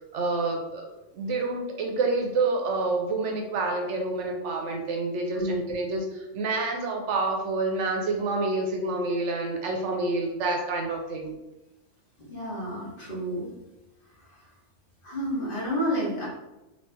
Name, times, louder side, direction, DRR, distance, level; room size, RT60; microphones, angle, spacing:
voice 1, 0.1-11.4, right 3 dB, 70° right, 2 dB, 0.9 m, -28 dB
voice 2, 5.3-6.0 12.2-13.5 14.1-14.5 15.0-16.3, equal, 45° left, -6 dB, 1.3 m, -31 dB
3.2 x 2.8 x 3.2 m, 0.97 s
omnidirectional pair, 1.4 m